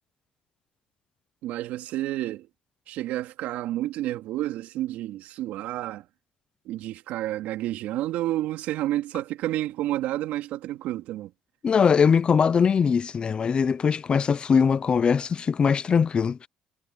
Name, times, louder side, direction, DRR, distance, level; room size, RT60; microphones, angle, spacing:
voice 1, 1.4-2.5 2.9-6.0 6.6-11.3, right 14 dB, 75° right, 3.0 m, -30 dB
voice 2, 11.6-16.5, left 6 dB, 40° left, 0.8 m, -21 dB
supercardioid pair, 90°, 3 cm